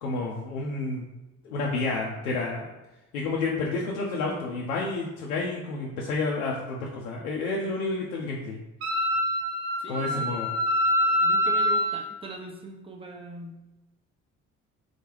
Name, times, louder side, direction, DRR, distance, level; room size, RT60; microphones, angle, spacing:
voice 1, 0.0-1.1 1.4-2.7 3.1-8.6 9.9-10.5, left 3 dB, 80° left, -2 dB, 0.6 m, -30 dB
Wind instrument woodwind instrument, 8.8-12.0, left 1 dB, 70° right, 0.7 m, -25 dB
voice 2, 9.8-10.4 11.0-13.6, right 3 dB, 15° right, 2 dB, 0.6 m, -41 dB
3.9 x 2.2 x 3.0 m, 1.0 s
figure-of-eight pair, 50°, 42 cm